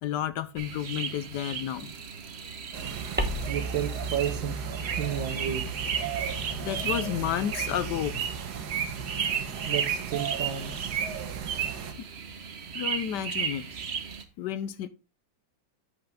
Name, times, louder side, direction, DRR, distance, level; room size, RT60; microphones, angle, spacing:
voice 1, 0.0-1.9 3.2-3.3 6.3-8.2 12.0-12.1 12.7-13.6 14.4-14.9, left 11 dB, 70° left, 1.2 m, -31 dB
sound 1, 0.6-14.2, right 6 dB, 45° right, 0.9 m, -37 dB
sound 2, 2.7-11.9, right 7 dB, 65° right, 1.4 m, -34 dB
sound 3, 3.2-8.0, right 2 dB, 15° right, 0.3 m, -36 dB
voice 2, 3.5-4.6 5.0-5.6 9.7-11.0, right 9 dB, 80° right, 1.7 m, -32 dB
8.3 x 6.5 x 3.4 m
omnidirectional pair, 2.1 m